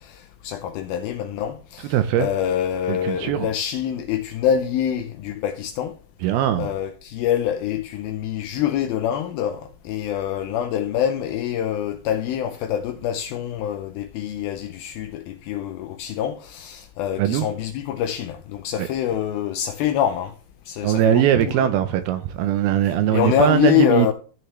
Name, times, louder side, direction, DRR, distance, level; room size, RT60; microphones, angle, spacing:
voice 1, 0.0-5.9 6.6-20.3 20.7-21.5 23.1-24.1, left 10 dB, 80° left, 2.2 m, -25 dB
voice 2, 1.8-2.3 2.9-3.5 6.2-6.7 17.2-17.5 18.8-18.9 20.8-24.1, right 11 dB, 80° right, 2.3 m, -21 dB
14.0 x 6.3 x 3.1 m
omnidirectional pair, 4.9 m